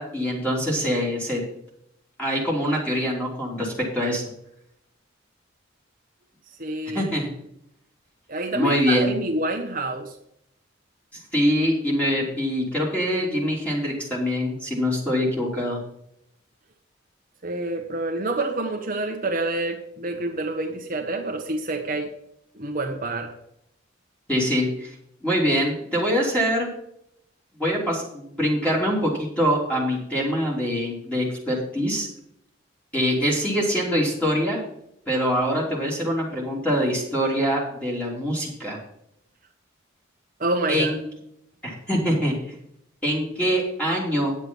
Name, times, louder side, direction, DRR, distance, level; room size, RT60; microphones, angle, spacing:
voice 1, 0.0-1.4 2.2-4.2 6.9-7.3 8.5-9.1 11.3-15.8 24.3-24.9 25.2-26.7 27.6-32.1 32.9-34.6 35.1-38.8 40.7-41.0 41.6-42.3 43.0-44.4, equal, 5° left, -4 dB, 3.4 m, -24 dB
voice 2, 6.6-7.1 8.3-10.1 17.4-22.1 22.6-23.3 40.4-40.9, right 2 dB, 45° right, 3 dB, 1.2 m, -27 dB
9.9 x 7.9 x 5.5 m, 0.75 s
head